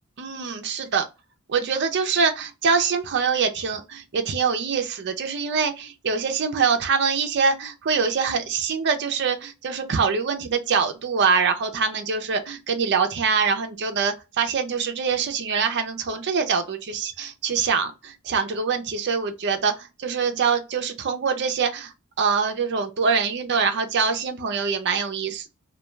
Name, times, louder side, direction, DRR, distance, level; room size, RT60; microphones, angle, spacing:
voice 1, 0.2-1.1 1.5-21.9 22.2-25.5, right 5 dB, 50° right, 0.5 m, -24 dB
2.3 x 2.2 x 3.0 m
head